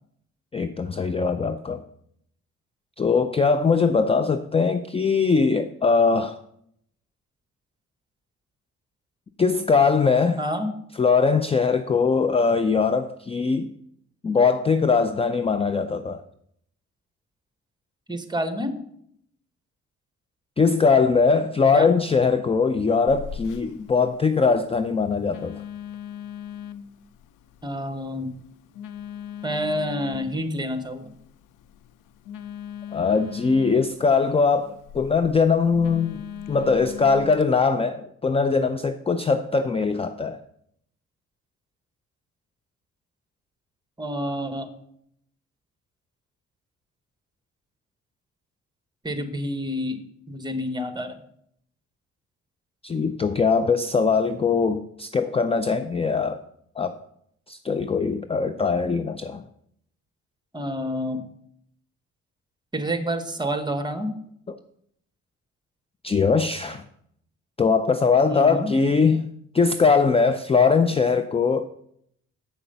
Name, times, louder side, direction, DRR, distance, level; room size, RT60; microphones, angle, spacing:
voice 1, 0.5-1.8 3.0-6.4 9.4-10.4 11.0-13.7 14.2-16.2 20.6-25.6 32.9-36.2 36.5-40.4 52.8-56.4 56.8-57.0 57.5-59.4 66.0-66.8 67.6-69.2 69.5-71.7, left 5 dB, 20° left, 10 dB, 0.4 m, -21 dB
voice 2, 10.4-10.7 18.1-18.8 21.7-21.9 27.6-28.3 29.4-31.1 44.0-44.7 49.0-50.0 50.3-51.2 60.5-61.2 62.7-64.1 68.3-68.7, equal, 15° right, 9 dB, 1.2 m, -28 dB
Telephone, 23.1-37.4, left 9 dB, 85° left, 0.6 m, -40 dB
7.9 x 7.0 x 5.5 m, 0.71 s
cardioid pair, 90°, 30 cm